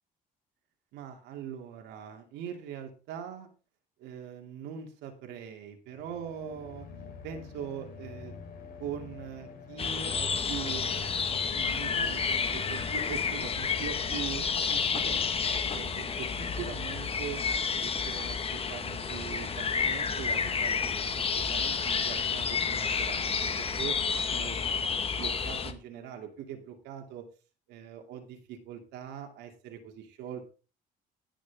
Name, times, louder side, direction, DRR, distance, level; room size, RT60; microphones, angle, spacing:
voice 1, 0.9-3.5 4.0-6.9 7.2-8.4 8.8-11.1 11.5-17.4 17.7-24.0 24.3-24.7 25.1-27.2 27.7-30.5, right 8 dB, 90° right, 4 dB, 2.6 m, -42 dB
sound 1, 5.9-17.8, left 5 dB, 60° left, 3.8 m, -46 dB
sound 2, 9.8-25.7, left 6 dB, 35° left, 1.4 m, -30 dB
18.0 x 6.3 x 3.5 m, 0.33 s
cardioid pair, 110°, 17 cm